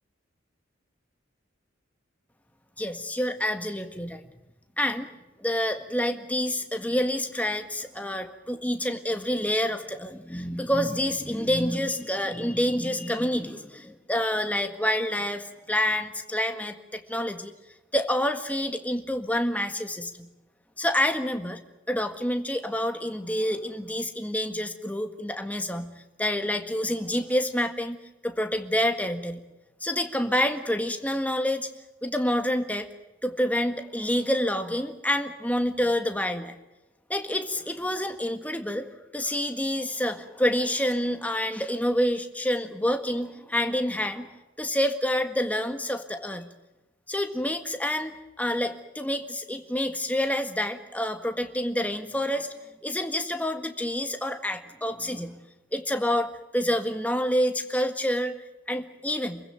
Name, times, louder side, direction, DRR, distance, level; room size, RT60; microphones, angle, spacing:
voice 1, 2.8-4.2 4.8-5.1 5.4-17.5 17.9-20.3 20.8-21.6 21.9-25.9 26.2-29.4 29.8-31.7 32.0-32.9 33.2-36.5 37.1-38.9 39.1-44.3 44.6-46.5 47.1-55.4 55.7-58.4 58.7-59.4, left 1 dB, 5° left, 6 dB, 1.7 m, -28 dB
28.0 x 15.5 x 9.1 m, 1.0 s
head